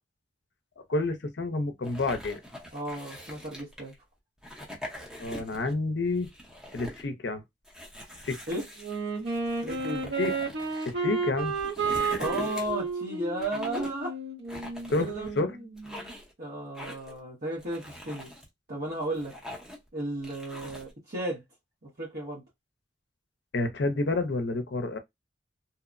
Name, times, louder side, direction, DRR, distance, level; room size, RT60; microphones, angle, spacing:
voice 1, 0.9-2.4 5.2-6.3 6.7-7.4 8.2-8.4 10.2-10.3 10.9-11.5 14.9-15.1 15.4-15.5 23.5-25.0, left 2 dB, 65° left, 0.5 m, -29 dB
sound 1, 1.8-3.9 4.4-5.7 6.1-7.1 7.6-10.9 11.4-12.9 13.4-14.0 14.5-15.4 15.8-16.3 16.7-17.2 17.6-18.5 18.9-19.9 20.2-20.9, left 1 dB, 5° right, 0.7 m, -43 dB
voice 2, 2.7-3.9 8.5-8.7 9.6-10.1 12.2-14.2 15.0-18.3 18.7-19.3 19.9-21.4 22.0-22.4, right 1 dB, 55° right, 1.0 m, -34 dB
Wind instrument woodwind instrument, 8.8-15.5, right 4 dB, 75° right, 1.2 m, -32 dB
2.8 x 2.0 x 2.4 m
head